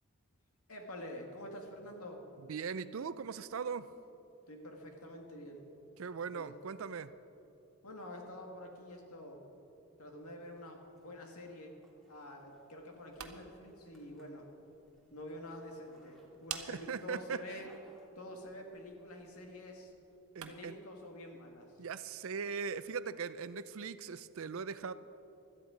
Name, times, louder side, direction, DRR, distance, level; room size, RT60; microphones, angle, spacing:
voice 1, 0.7-2.3 4.5-5.7 6.3-6.5 7.8-9.5 10.0-11.8 12.1-14.5 15.1-17.7 18.2-19.9 20.4-21.8, left 1 dB, 90° left, 2 dB, 2.0 m, -47 dB
voice 2, 2.4-3.9 6.0-7.1 16.7-17.6 20.3-20.8 21.8-24.9, right 6 dB, 70° right, 14 dB, 0.5 m, -40 dB
Zipper (clothing), 10.4-18.8, equal, ahead, 1.9 m, -67 dB
sound 1, 12.9-20.8, right 9 dB, 90° right, 1.0 m, -52 dB
16.5 x 12.5 x 5.0 m, 3.0 s
head